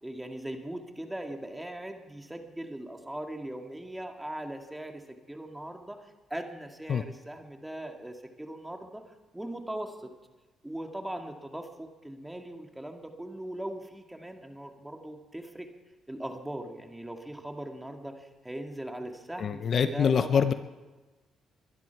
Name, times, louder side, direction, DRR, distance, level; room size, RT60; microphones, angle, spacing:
voice 1, 0.0-10.1 10.6-15.7 16.1-20.5, right 1 dB, 10° right, 4 dB, 2.0 m, -40 dB
voice 2, 19.4-20.5, left 7 dB, 50° left, 11 dB, 0.7 m, -25 dB
22.0 x 11.0 x 4.7 m, 1.2 s
cardioid pair, 85°, 0 cm